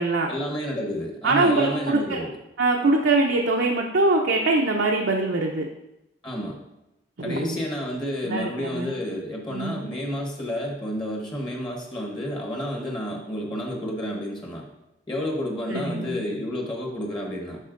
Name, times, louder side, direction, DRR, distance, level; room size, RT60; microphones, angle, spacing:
voice 1, 0.3-2.3 6.2-6.6 7.2-14.6 15.1-17.7, left 1 dB, 25° left, 0 dB, 1.0 m, -30 dB
voice 2, 1.2-2.3 2.6-5.7 7.2-7.6 8.2-8.9 9.5-9.8 15.7-16.2, right 2 dB, 75° right, -1 dB, 0.6 m, -23 dB
11.0 x 4.2 x 2.5 m, 0.92 s
head